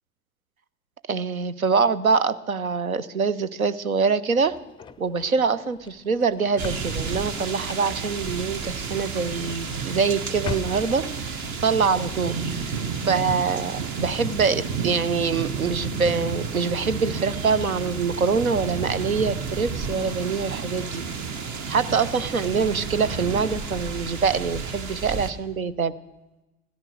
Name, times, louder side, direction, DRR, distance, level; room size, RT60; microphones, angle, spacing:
voice 1, 1.1-4.6 5.0-11.3 11.6-12.8 13.1-21.0 21.7-25.9, right 5 dB, 90° right, 16 dB, 0.7 m, -24 dB
sound 1, 4.4-11.8, left 7 dB, 10° left, 0.4 m, -42 dB
sound 2, 6.6-25.3, right 5 dB, 45° right, 1.4 m, -31 dB
15.5 x 13.5 x 6.5 m, 1.0 s
figure-of-eight pair, 70°, 41 cm